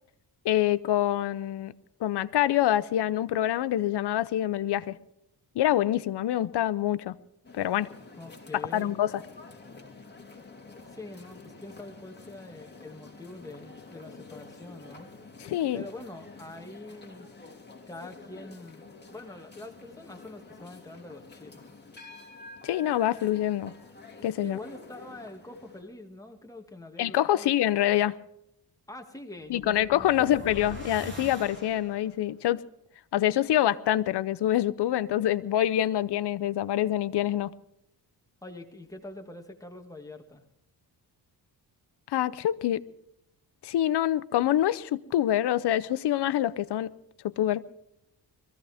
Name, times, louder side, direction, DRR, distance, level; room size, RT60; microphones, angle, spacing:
voice 1, 0.4-1.7 2.0-5.0 5.5-7.2 7.5-7.9 8.7-9.1 15.4-15.8 22.6-23.7 24.2-24.6 27.0-28.1 29.5-32.6 33.1-37.5 42.1-42.8 43.6-46.9 47.2-47.6, left 12 dB, 75° left, 16 dB, 0.8 m, -26 dB
sound 1, 7.4-25.8, left 3 dB, 25° left, 3.3 m, -49 dB
voice 2, 8.2-8.9 10.8-15.1 15.7-17.3 17.9-21.7 24.4-27.5 28.9-30.5 38.4-40.4, left 2 dB, 10° left, 3 dB, 2.1 m, -44 dB
sound 2, 29.4-32.2, right 1 dB, 25° right, 4.7 m, -43 dB
22.5 x 15.0 x 3.5 m, 0.79 s
cardioid pair, 90°, 41 cm